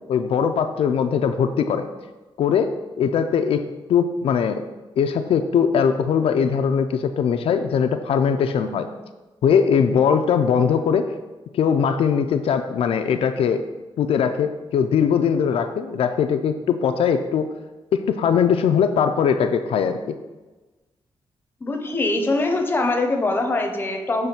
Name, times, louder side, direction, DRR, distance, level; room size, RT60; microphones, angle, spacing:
voice 1, 0.1-1.9 2.4-3.6 3.9-4.7 5.0-8.9 9.4-11.1 11.5-13.6 14.0-17.5 17.9-20.0, left 7 dB, 80° left, 7 dB, 0.4 m, -20 dB
voice 2, 21.6-24.3, left 2 dB, 20° left, 4 dB, 0.7 m, -23 dB
6.9 x 3.1 x 5.9 m, 1.2 s
wide cardioid pair, 180°, 10 cm